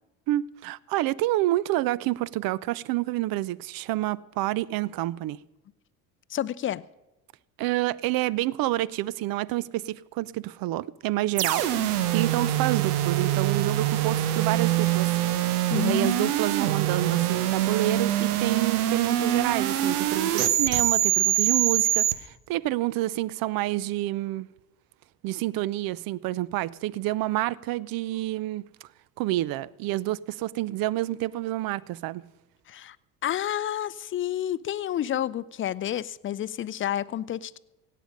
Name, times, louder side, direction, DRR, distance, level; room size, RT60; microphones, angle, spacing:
voice 1, 0.3-5.4 7.6-15.1 15.7-24.5 25.2-28.7 29.2-32.2, right 16 dB, 55° right, 0.5 m, -28 dB
voice 2, 6.3-6.8 15.7-16.3 32.7-33.0 33.2-37.6, left 11 dB, 30° left, 0.5 m, -30 dB
sound 1, 11.4-22.1, right 12 dB, 85° right, 0.9 m, -24 dB
16.5 x 8.5 x 5.2 m
hypercardioid pair, 70°, 44 cm